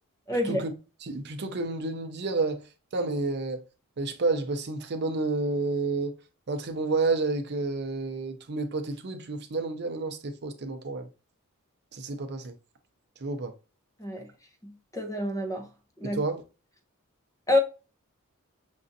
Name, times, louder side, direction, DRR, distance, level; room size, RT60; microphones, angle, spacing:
voice 1, 0.3-0.6 14.0-14.3 14.6-15.7 16.0-16.2 17.5-17.6, left 1 dB, 15° left, 0.7 m, -27 dB
voice 2, 1.0-2.7 2.9-3.6 4.0-6.1 6.5-11.1 11.9-12.5 13.2-13.5 16.0-16.4, right 3 dB, 50° right, 0.6 m, -30 dB
6.1 x 2.5 x 2.6 m
head